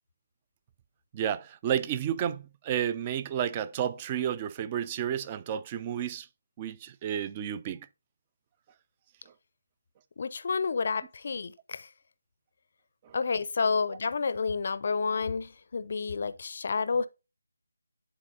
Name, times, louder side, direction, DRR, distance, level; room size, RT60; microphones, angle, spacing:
voice 1, 1.1-6.3 6.6-7.9 13.0-13.2, right 9 dB, 20° right, 0.4 m, -31 dB
voice 2, 10.2-11.9 13.1-17.1, left 5 dB, 45° left, 0.5 m, -30 dB
11.0 x 3.9 x 2.6 m
figure-of-eight pair, 155°, 0 cm